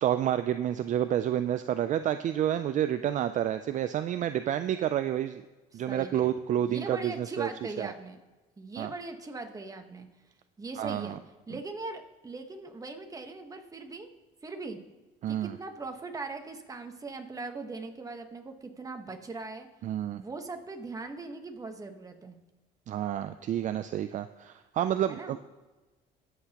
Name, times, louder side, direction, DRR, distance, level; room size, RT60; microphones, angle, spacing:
voice 1, 0.0-5.4 5.7-7.5 7.8-7.9 8.8-8.9 10.8-11.2 15.2-15.6 19.8-20.2 22.9-25.4, right 11 dB, 50° right, 10 dB, 0.4 m, -29 dB
voice 2, 5.7-6.3 6.6-8.2 8.6-10.1 10.6-11.2 11.5-14.1 14.4-14.8 15.3-19.7 20.1-22.4 25.1-25.4, right 3 dB, 20° right, 5 dB, 1.2 m, -40 dB
20.0 x 7.8 x 2.9 m, 1.2 s
cardioid pair, 110°, 17 cm